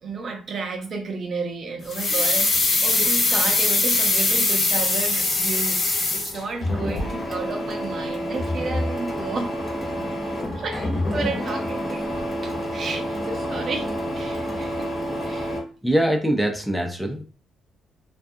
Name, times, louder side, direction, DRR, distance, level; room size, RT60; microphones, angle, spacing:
voice 1, 0.0-5.8 6.1-9.5 10.6-10.8 11.1-12.1 12.4-13.9 14.1-14.9 15.2-15.5, right 4 dB, 55° right, 4 dB, 0.6 m, -32 dB
sound 1, 1.9-6.7 7.0-7.1, left 3 dB, 55° left, 1.0 m, -21 dB
Printer, 6.6-15.6, equal, 30° left, 1.1 m, -28 dB
voice 2, 15.8-17.2, right 1 dB, ahead, 3 dB, 0.5 m, -22 dB
2.4 x 2.3 x 2.6 m, 0.36 s
cardioid pair, 90°, 0 cm